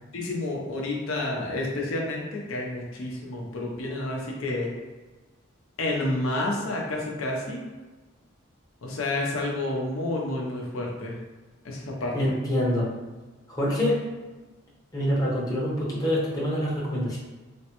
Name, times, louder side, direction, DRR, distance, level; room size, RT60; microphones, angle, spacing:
voice 1, 0.1-4.7 5.8-7.7 8.8-11.2 11.6-12.3, left 2 dB, 80° left, -2 dB, 0.6 m, -30 dB
voice 2, 12.1-12.9 13.5-14.0 14.9-17.2, equal, 20° left, -7 dB, 0.7 m, -25 dB
3.3 x 2.1 x 2.9 m, 1.2 s
head